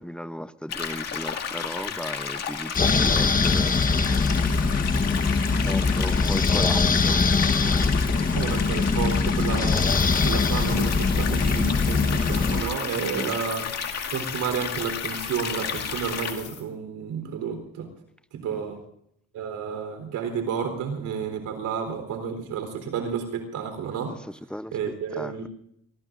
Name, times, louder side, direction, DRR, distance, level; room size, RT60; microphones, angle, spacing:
voice 1, 0.0-5.1 5.6-8.2 13.0-13.4 18.5-18.7 24.1-25.3, equal, 5° left, 13 dB, 0.7 m, -37 dB
sound 1, 0.7-16.3, left 6 dB, 55° left, 2.3 m, -32 dB
sound 2, 2.7-12.6, left 4 dB, 30° left, 1.1 m, -22 dB
voice 2, 8.3-9.9 10.2-13.7 14.1-17.9 18.3-18.8 19.3-24.2 24.7-25.5, right 6 dB, 85° right, 6 dB, 3.9 m, -31 dB
sound 3, 9.7-16.6, left 9 dB, 75° left, 3.1 m, -40 dB
26.5 x 19.5 x 2.6 m, 0.74 s
cardioid pair, 90°, 30 cm